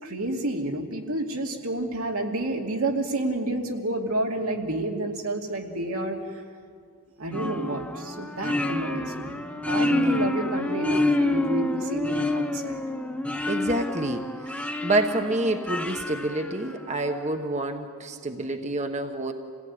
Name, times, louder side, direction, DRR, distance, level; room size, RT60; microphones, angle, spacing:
voice 1, 0.0-6.2 7.2-12.8, right 2 dB, 85° right, 1 dB, 2.7 m, -29 dB
sound 1, 7.3-17.1, left 2 dB, 5° left, 0.8 m, -28 dB
voice 2, 9.9-10.3 13.5-19.3, right 2 dB, 30° right, 5 dB, 1.1 m, -28 dB
27.0 x 17.0 x 9.6 m, 2.1 s
head